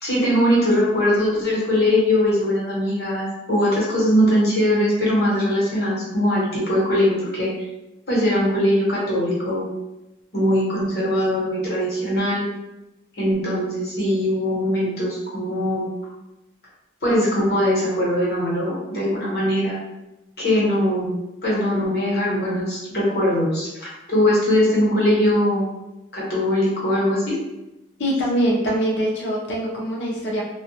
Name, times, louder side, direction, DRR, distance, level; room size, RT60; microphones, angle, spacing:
voice 1, 0.0-7.5 8.1-9.7 10.3-12.5 13.2-15.9 17.0-19.8 20.4-21.1 21.4-25.6 26.1-27.4, left 1 dB, 60° left, -7 dB, 1.0 m, -21 dB
voice 2, 28.0-30.4, equal, 75° left, -3 dB, 0.6 m, -23 dB
2.2 x 2.2 x 2.7 m, 0.97 s
head